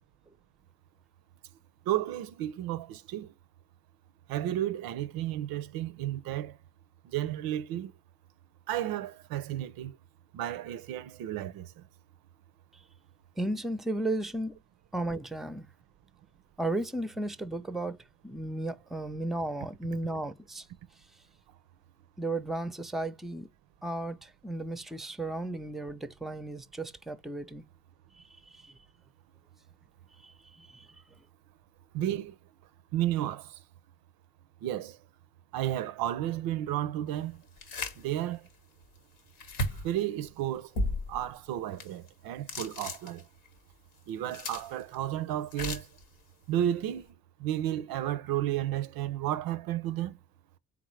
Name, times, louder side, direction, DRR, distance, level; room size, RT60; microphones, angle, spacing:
voice 1, 1.9-3.3 4.3-6.6 7.0-7.9 8.7-10.0 10.3-11.8 31.9-32.4 32.9-33.6 34.6-35.0 35.5-37.4 38.0-38.4 39.7-40.7 41.1-43.2 44.1-45.9 46.5-47.1 47.4-50.2, right 12 dB, 85° right, 0.5 m, -32 dB
voice 2, 13.4-14.6 14.9-15.7 16.6-18.0 18.2-20.7 22.2-23.5 23.8-27.6 28.2-28.3 28.5-28.7 30.2-30.9, right 2 dB, ahead, 0.4 m, -34 dB
sound 1, 37.6-38.0 38.5-38.6 39.4-39.9 40.7-41.3 41.8-42.1 42.5-43.5 44.1-44.9 45.5-46.0, left 1 dB, 85° left, 1.1 m, -34 dB
3.8 x 3.5 x 3.1 m
supercardioid pair, 60°, 35 cm